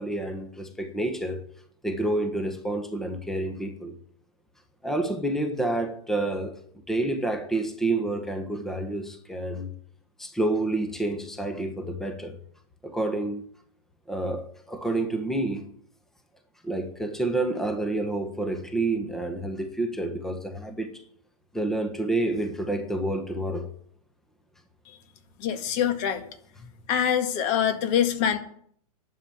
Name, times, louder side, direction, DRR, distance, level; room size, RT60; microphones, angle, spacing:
voice 1, 0.0-1.4 1.8-3.9 4.8-6.6 6.9-9.7 10.2-12.4 12.8-13.5 14.1-15.6 16.6-21.0 21.5-23.7, right 2 dB, ahead, 1.3 m, -29 dB
voice 2, 25.4-26.2 26.9-28.4, left 9 dB, 35° left, 1.8 m, -24 dB
11.0 x 7.6 x 8.7 m
hypercardioid pair, 130°, 20 cm